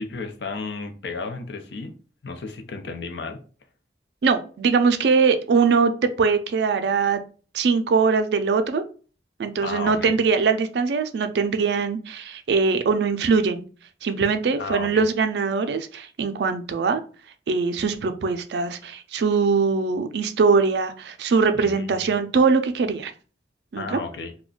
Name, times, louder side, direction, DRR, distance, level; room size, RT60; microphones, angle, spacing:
voice 1, 0.0-1.9 2.2-3.4 9.6-10.2 14.6-15.0 21.5-22.0 23.8-24.3, left 4 dB, 75° left, 5 dB, 0.5 m, -33 dB
voice 2, 4.2-7.2 7.5-8.8 9.4-13.6 14.0-17.0 17.5-23.1 23.7-24.0, right 5 dB, 75° right, 9 dB, 0.4 m, -22 dB
2.4 x 2.1 x 3.7 m, 0.39 s
head